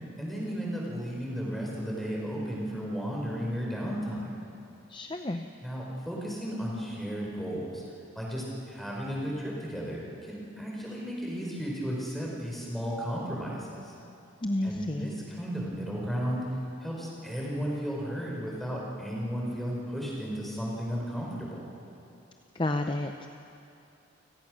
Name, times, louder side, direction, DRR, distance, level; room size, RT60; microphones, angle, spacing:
voice 1, 0.2-4.4 5.6-7.8 8.1-13.9 14.6-16.4 16.8-21.6, equal, ahead, -4 dB, 4.6 m, -34 dB
voice 2, 4.9-5.5 14.4-15.1 22.5-23.3, left 1 dB, 25° left, 6 dB, 0.6 m, -31 dB
29.5 x 17.5 x 6.3 m, 2.7 s
head